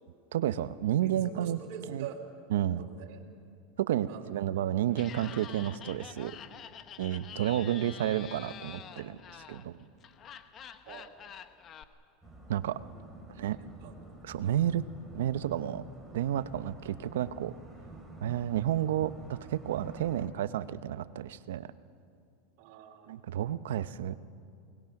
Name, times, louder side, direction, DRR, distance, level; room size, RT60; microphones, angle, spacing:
voice 1, 0.3-1.6 1.9-2.1 2.5-2.8 3.8-6.4 7.0-9.9 12.5-12.8 13.4-13.6 14.2-14.8 15.1-15.8 16.1-17.5 18.2-21.7 23.1-24.1, right 11 dB, 85° right, 14 dB, 0.8 m, -31 dB
voice 2, 1.0-2.2 2.8-3.2 4.0-4.3 10.9-11.1 13.6-13.9 14.4-14.7 22.6-23.2, right 9 dB, 60° right, 0 dB, 3.4 m, -46 dB
Laughter, 4.9-11.8, left 8 dB, 35° left, 1.1 m, -47 dB
sound 1, 12.2-20.3, right 2 dB, ahead, 3.9 m, -49 dB
29.0 x 20.0 x 5.9 m, 2.3 s
supercardioid pair, 120°, 0 cm